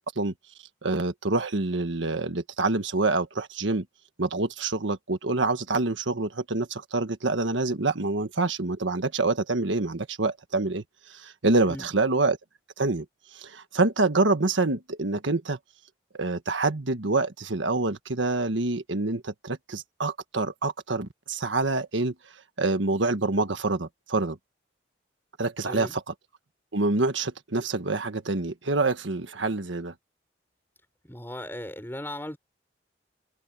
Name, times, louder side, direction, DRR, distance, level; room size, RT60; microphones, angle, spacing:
voice 1, 0.8-3.8 4.2-10.8 11.1-12.4 12.8-13.0 13.3-15.6 16.1-22.1 22.6-24.4 25.4-26.0 26.7-29.9, right 3 dB, 85° right, 1.5 m, -26 dB
voice 2, 31.0-32.4, left 1 dB, 10° left, 6.2 m, -37 dB
head